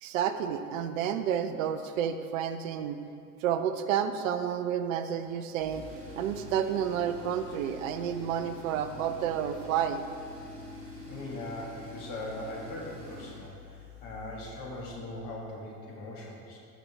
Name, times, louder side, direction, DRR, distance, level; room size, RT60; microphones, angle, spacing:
voice 1, 0.0-3.0 3.4-5.8 6.2-10.0, right 9 dB, 60° right, 9 dB, 0.6 m, -30 dB
Tools, 5.6-15.1, left 1 dB, 90° right, 1.4 m, -46 dB
voice 2, 11.0-16.6, left 1 dB, 45° left, -2 dB, 1.8 m, -40 dB
12.5 x 5.2 x 3.4 m, 2.4 s
figure-of-eight pair, 70°, 46 cm